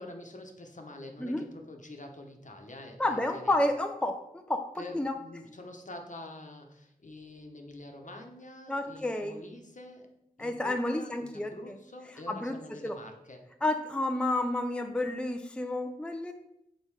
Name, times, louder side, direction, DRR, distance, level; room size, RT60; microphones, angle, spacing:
voice 1, 0.0-3.7 4.8-10.1 10.4-13.4, left 1 dB, 55° left, 3 dB, 1.1 m, -46 dB
voice 2, 3.0-4.7 4.9-5.1 8.7-9.4 10.4-11.7 12.3-13.0 13.6-16.3, left 1 dB, 5° left, 5 dB, 0.5 m, -30 dB
5.5 x 4.0 x 4.8 m, 0.81 s
cardioid pair, 45°, 16 cm